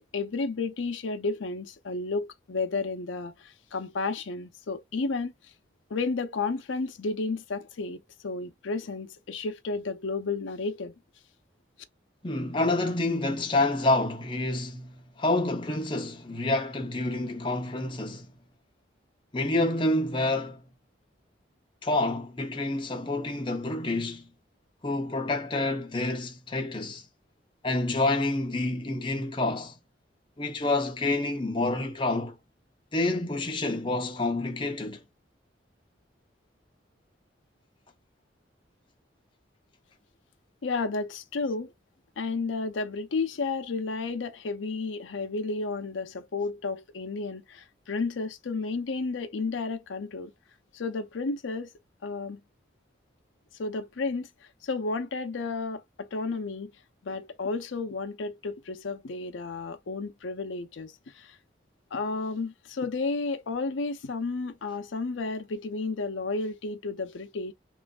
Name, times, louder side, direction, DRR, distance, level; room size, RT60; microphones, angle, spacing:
voice 1, 0.0-5.3 5.9-10.9 40.6-41.7 42.2-50.3 50.7-51.7 52.0-52.4 53.6-54.3 54.6-56.7 57.0-61.4 61.9-67.5, left 3 dB, 85° left, 0.6 m, -32 dB
voice 2, 12.2-18.3 19.3-20.6 21.8-24.2 24.8-27.0 27.6-29.8 30.4-32.4 32.9-35.0, left 2 dB, 25° left, 0.6 m, -28 dB
3.1 x 2.4 x 2.3 m
head